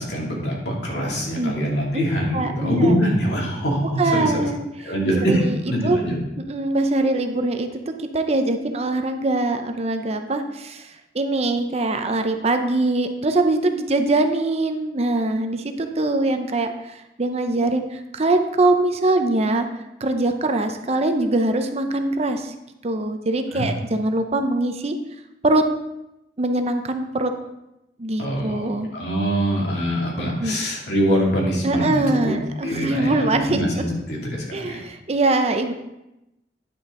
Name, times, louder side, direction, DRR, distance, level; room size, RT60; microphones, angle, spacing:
voice 1, 0.0-4.5 4.8-6.2 23.5-23.7 28.2-32.3 32.6-34.8, equal, 70° left, -3 dB, 2.4 m, -24 dB
voice 2, 2.3-2.9 4.0-4.6 5.3-5.6 5.8-6.0 6.5-7.7 8.1-19.7 20.0-22.5 22.8-25.0 25.4-25.7 26.4-27.3 28.0-28.9 30.4-30.6 31.6-33.6 34.5-35.7, right 2 dB, 35° right, 6 dB, 0.6 m, -22 dB
10.0 x 6.3 x 3.7 m, 0.91 s
head